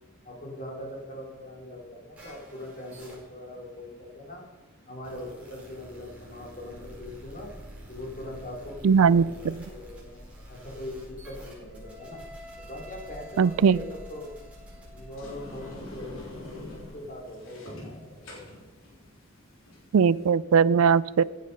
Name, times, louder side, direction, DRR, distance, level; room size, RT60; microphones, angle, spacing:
voice 1, 0.2-4.4 4.9-7.5 7.9-8.7 9.0-10.2 10.5-12.2 12.6-14.3 14.9-18.3, left 1 dB, 40° left, -1 dB, 3.4 m, -41 dB
sound 1, 2.1-15.7, equal, 5° right, 5.0 m, -51 dB
sound 2, 6.7-16.9, equal, 25° left, 4.3 m, -48 dB
voice 2, 8.8-9.2 13.4-13.8 19.9-21.2, right 6 dB, 80° right, 20 dB, 0.4 m, -19 dB
Sliding door, 15.1-20.3, left 1 dB, 70° left, 3.5 m, -45 dB
15.5 x 9.4 x 5.4 m, 1.2 s
head